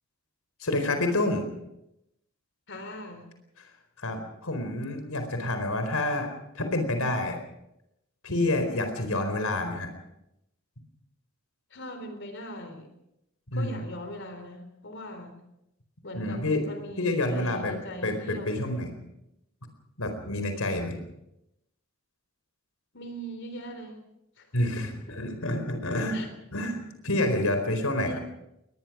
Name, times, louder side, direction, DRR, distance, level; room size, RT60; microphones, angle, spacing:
voice 1, 0.6-1.4 4.0-4.2 4.4-6.3 6.5-7.4 8.2-9.9 13.5-13.8 16.1-16.6 17.0-17.7 18.0-18.9 20.0-21.0 24.5-26.2 26.5-28.1, left 1 dB, 90° left, 6 dB, 4.4 m, -28 dB
voice 2, 2.7-3.3 11.7-12.9 13.5-15.3 16.0-18.5 22.9-24.0 24.4-24.5 24.8-25.2 26.1-26.3 28.0-28.2, equal, 60° left, 7 dB, 3.8 m, -40 dB
21.5 x 20.5 x 6.2 m, 0.84 s
head